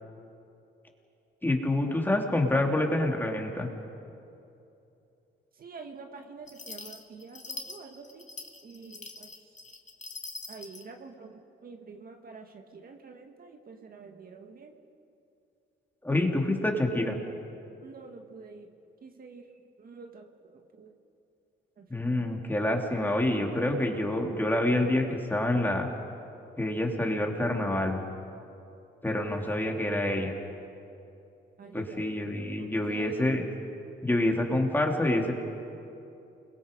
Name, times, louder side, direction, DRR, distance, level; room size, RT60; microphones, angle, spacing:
voice 1, 1.4-3.7 16.0-17.2 21.9-25.9 26.6-28.0 29.0-30.3 31.7-33.4 34.0-35.3, left 1 dB, 10° left, 1 dB, 3.0 m, -27 dB
voice 2, 5.6-8.3 8.6-9.3 10.5-14.7 17.8-18.7 19.0-19.4 19.8-20.9 21.8-22.2 29.3-30.0 31.6-33.3, right 4 dB, 50° right, 4 dB, 1.9 m, -47 dB
sound 1, 6.5-10.9, left 3 dB, 35° left, 2.2 m, -43 dB
29.0 x 22.0 x 5.3 m, 2.8 s
cardioid pair, 90°, 20 cm